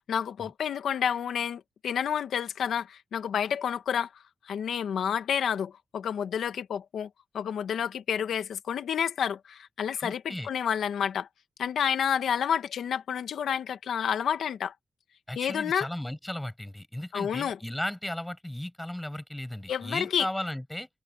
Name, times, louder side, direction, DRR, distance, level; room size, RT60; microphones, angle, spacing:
voice 1, 0.0-4.1 4.4-7.1 7.3-11.3 11.6-14.7 15.4-15.9 17.1-17.6 19.7-20.3, left 8 dB, 85° left, 1.1 m, -29 dB
voice 2, 10.0-10.5 15.3-20.9, left 1 dB, 5° left, 6.9 m, -35 dB
wide cardioid pair, 145°, 0 cm